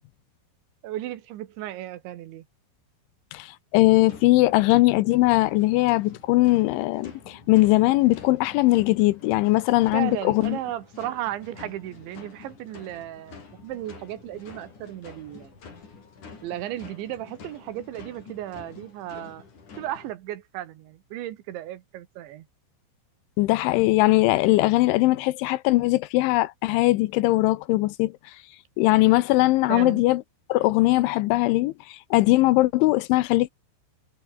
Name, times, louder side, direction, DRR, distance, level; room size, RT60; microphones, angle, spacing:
voice 1, 0.8-2.5 9.9-15.5 16.4-19.4 19.8-22.5 29.7-30.0, right 13 dB, 70° right, 3.6 m, -35 dB
voice 2, 3.3-10.6 23.4-28.1 28.8-30.2 30.5-33.5, left 19 dB, 80° left, 3.0 m, -20 dB
sound 1, 4.0-20.1, left 5 dB, 40° left, 6.2 m, -47 dB
omnidirectional pair, 5.7 m